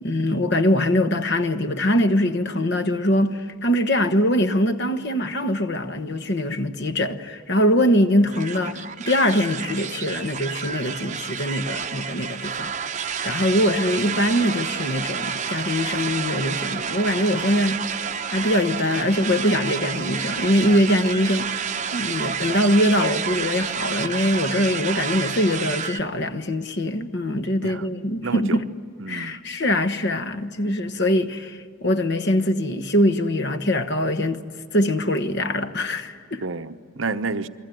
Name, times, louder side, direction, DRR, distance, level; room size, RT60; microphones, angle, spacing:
voice 1, 0.0-12.7 13.2-17.8 18.3-28.7 29.1-34.4 34.7-36.4, left 1 dB, 50° left, 1.2 m, -22 dB
sound 1, 8.3-26.0, right 7 dB, 35° right, 0.8 m, -29 dB
voice 2, 28.2-28.6 29.0-29.4 30.6-30.7 36.4-37.5, right 3 dB, 65° right, 0.9 m, -30 dB
29.0 x 22.0 x 9.2 m
head